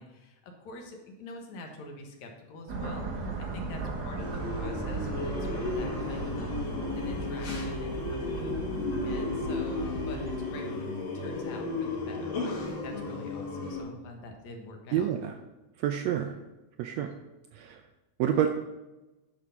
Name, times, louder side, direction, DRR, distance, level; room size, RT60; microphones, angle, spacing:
voice 1, 0.0-6.6 7.0-8.5 9.1-10.9 11.1-15.1, left 2 dB, 65° left, 3 dB, 2.4 m, -45 dB
sound 1, 2.7-10.5, right 4 dB, 40° right, 1.6 m, -38 dB
sound 2, 2.7-7.6, right 4 dB, 70° right, 0.9 m, -40 dB
sound 3, 4.2-13.8, left 3 dB, 90° left, 3.8 m, -34 dB
voice 2, 14.9-15.3 15.8-16.4 16.8-17.2 17.5-17.8 18.2-18.5, right 10 dB, 85° right, 7 dB, 1.5 m, -28 dB
11.0 x 5.3 x 5.7 m, 1.1 s
omnidirectional pair, 3.7 m